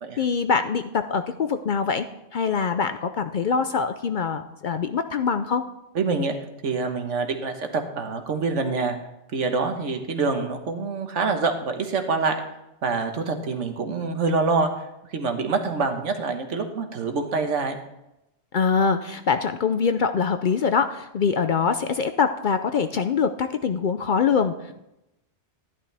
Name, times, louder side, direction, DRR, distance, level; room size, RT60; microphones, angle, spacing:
voice 1, 0.2-2.1 2.3-5.7 18.5-24.7, left 5 dB, 55° left, 9 dB, 0.5 m, -24 dB
voice 2, 5.9-6.3 6.6-9.0 9.3-12.4 12.8-14.7 15.1-17.8, right 4 dB, 90° right, 5 dB, 1.5 m, -26 dB
12.0 x 11.0 x 3.3 m, 0.90 s
omnidirectional pair, 1.2 m